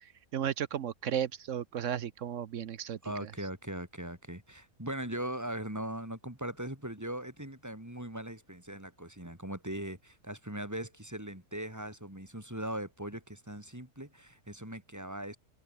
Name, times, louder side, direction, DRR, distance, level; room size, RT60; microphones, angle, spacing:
voice 1, 0.3-3.0, right 9 dB, 60° right, 1.0 m, -34 dB
voice 2, 3.0-15.4, right 1 dB, 10° right, 4.1 m, -40 dB
omnidirectional pair, 1.6 m